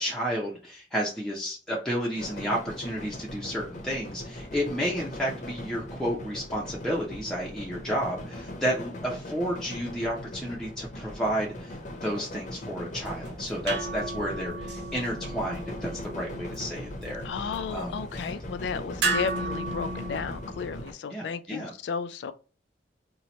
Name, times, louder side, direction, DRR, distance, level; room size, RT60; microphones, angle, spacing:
voice 1, 0.0-18.0 21.1-21.7, equal, 5° left, 0.5 m, -31 dB
sound 1, 2.1-20.9, left 1 dB, 45° left, 0.7 m, -40 dB
sound 2, 12.9-20.9, right 2 dB, 80° right, 0.8 m, -35 dB
voice 2, 17.2-22.3, left 6 dB, 80° left, 0.3 m, -33 dB
2.8 x 2.1 x 3.9 m
head